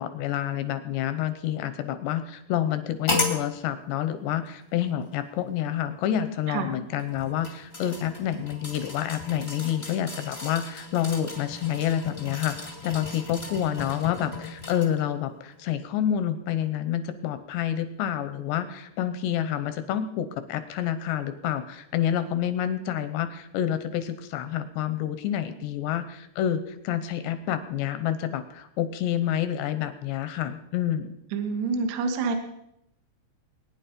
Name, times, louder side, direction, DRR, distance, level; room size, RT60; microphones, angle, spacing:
voice 1, 0.0-12.6 12.8-31.1, left 10 dB, 80° left, 11 dB, 2.6 m, -28 dB
sound 1, 3.1-3.4 4.4-4.5 7.0-15.0 15.5-15.6, left 2 dB, 45° left, 0.7 m, -35 dB
voice 2, 31.3-32.4, right 4 dB, 65° right, 5 dB, 3.3 m, -27 dB
22.5 x 9.9 x 5.3 m, 0.82 s
omnidirectional pair, 5.8 m